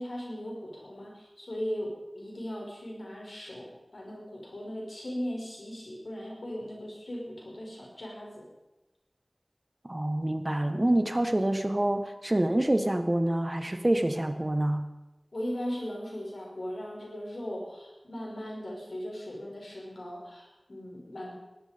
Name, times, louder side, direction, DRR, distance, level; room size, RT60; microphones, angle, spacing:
voice 1, 0.0-8.5 15.3-21.3, equal, 90° left, -3 dB, 5.7 m, -38 dB
voice 2, 9.8-14.9, right 1 dB, 35° right, 8 dB, 1.4 m, -27 dB
17.5 x 12.5 x 5.3 m, 1.0 s
wide cardioid pair, 50°, 0 cm